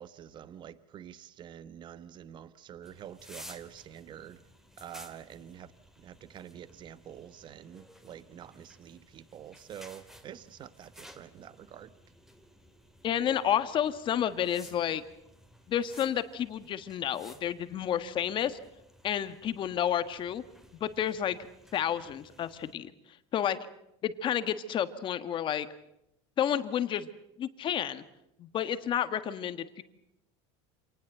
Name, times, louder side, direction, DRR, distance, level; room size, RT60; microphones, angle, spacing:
voice 1, 0.0-4.4 4.8-11.9, right 9 dB, 30° right, 1.1 m, -47 dB
sound 1, 2.8-22.7, equal, 5° right, 2.2 m, -55 dB
voice 2, 13.0-15.0 15.7-18.6 19.0-20.4 20.8-21.4 21.7-22.9 23.3-23.6 24.0-25.7 26.4-27.1 27.4-28.0 28.4-29.8, left 10 dB, 35° left, 1.5 m, -30 dB
26.5 x 19.5 x 8.0 m
supercardioid pair, 145°, 15 cm